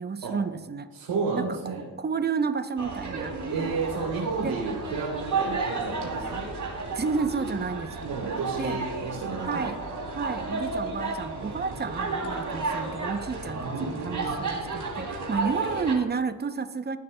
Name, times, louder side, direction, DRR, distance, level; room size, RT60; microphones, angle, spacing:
voice 1, 0.0-0.9 1.3-1.6 2.0-3.7 4.4-4.6 6.9-8.1 8.6-8.8 9.5-9.8 10.2-17.0, right 5 dB, 25° right, 11 dB, 0.7 m, -31 dB
voice 2, 0.9-1.8 3.5-6.4 8.0-9.6 13.5-14.4, right 4 dB, 75° right, -4 dB, 3.1 m, -32 dB
sound 1, 2.8-16.0, right 3 dB, 45° right, 2.9 m, -32 dB
18.0 x 9.5 x 2.2 m, 1.2 s
cardioid pair, 85°, 43 cm